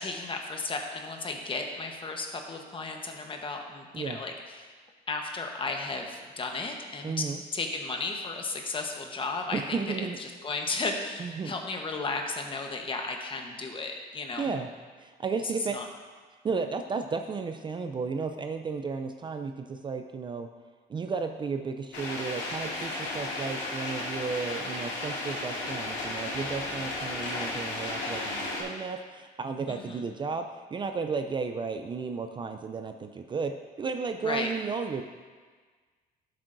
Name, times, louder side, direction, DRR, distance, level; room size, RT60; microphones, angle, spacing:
voice 1, 0.0-4.7 5.1-7.2 7.5-14.5 15.7-15.9 29.7-30.0 34.2-34.5, left 3 dB, 30° left, 3 dB, 1.1 m, -34 dB
voice 2, 7.0-7.4 9.5-10.2 11.2-11.5 14.4-14.7 15.0-15.8 16.4-20.5 20.9-33.5 33.8-35.0, right 5 dB, 30° right, 7 dB, 0.4 m, -33 dB
sound 1, 21.9-28.6, left 2 dB, 85° left, 2.3 m, -34 dB
12.0 x 7.5 x 2.6 m, 1.5 s
cardioid pair, 110°, 17 cm